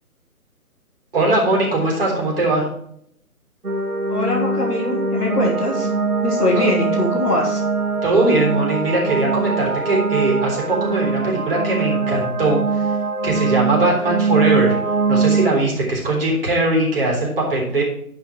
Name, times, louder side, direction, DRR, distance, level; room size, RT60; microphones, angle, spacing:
voice 1, 1.1-2.7 6.5-6.7 8.0-12.6 13.2-14.7 15.1-17.8, right 2 dB, 40° right, -2 dB, 3.5 m, -20 dB
sound 1, 3.6-15.5, right 4 dB, 80° right, 2.0 m, -22 dB
voice 2, 4.1-5.9 6.2-7.6, left 1 dB, 10° left, -8 dB, 1.2 m, -22 dB
11.0 x 5.0 x 4.5 m, 0.71 s
figure-of-eight pair, 145°, 45 cm